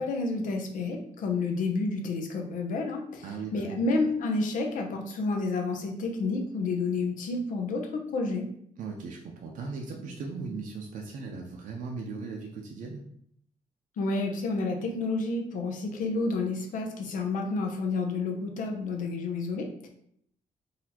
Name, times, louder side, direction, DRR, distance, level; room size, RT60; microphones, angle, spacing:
voice 1, 0.0-3.2 3.5-8.5 14.0-19.9, left 3 dB, 90° left, 3 dB, 0.7 m, -30 dB
voice 2, 3.2-3.8 8.8-13.0, right 4 dB, 85° right, 0 dB, 0.6 m, -38 dB
4.0 x 2.7 x 2.9 m, 0.68 s
wide cardioid pair, 180°, 13 cm